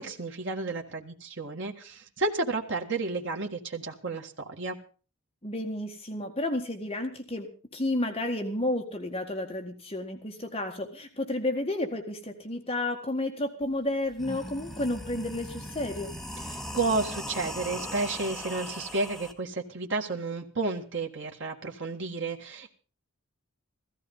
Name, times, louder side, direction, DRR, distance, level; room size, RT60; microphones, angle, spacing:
voice 1, 0.0-4.8 16.5-22.7, right 3 dB, 55° right, 2 dB, 1.8 m, -32 dB
voice 2, 5.4-16.1, left 1 dB, 25° left, 4 dB, 1.8 m, -31 dB
sound 1, 13.6-13.7 14.1-19.3, equal, ahead, 1.5 m, -39 dB
15.5 x 14.5 x 5.5 m, 0.38 s
head